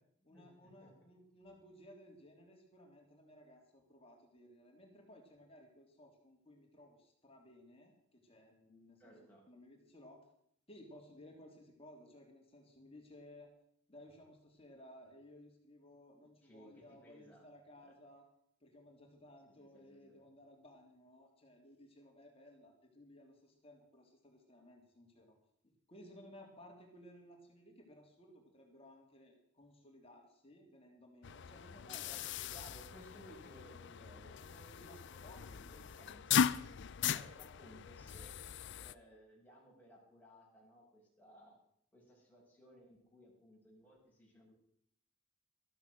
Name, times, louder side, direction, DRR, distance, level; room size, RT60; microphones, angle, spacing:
voice 1, 0.3-9.1 9.5-10.2 10.7-13.5 13.9-18.2 18.6-25.4 25.9-32.5 34.8-35.8, left 1 dB, 30° left, 2 dB, 3.2 m, -59 dB
voice 2, 9.0-9.4 16.2-17.4 17.8-17.9 19.6-20.2 31.8-36.6 37.1-38.4 38.7-41.5 41.9-44.5, equal, 10° left, -4 dB, 6.5 m, -60 dB
sound 1, 31.2-38.9, left 8 dB, 60° left, 0.5 m, -38 dB
14.0 x 12.5 x 6.3 m, 0.69 s
head